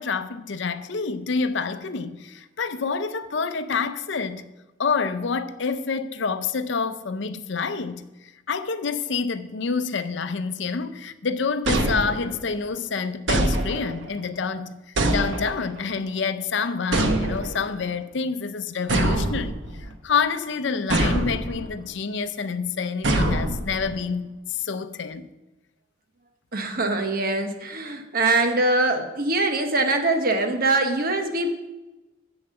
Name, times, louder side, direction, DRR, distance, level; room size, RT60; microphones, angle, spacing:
voice 1, 0.0-4.5 4.8-8.1 8.5-14.7 15.1-25.3, left 5 dB, 65° left, 0.6 m, -27 dB
sound 1, 11.7-12.5 13.3-14.1 15.0-15.8 16.9-17.7 18.9-19.9 20.9-21.7 23.0-24.0, right 1 dB, 75° right, 1.1 m, -24 dB
voice 2, 26.5-31.6, right 2 dB, 50° right, 1.1 m, -23 dB
7.2 x 7.1 x 7.6 m
head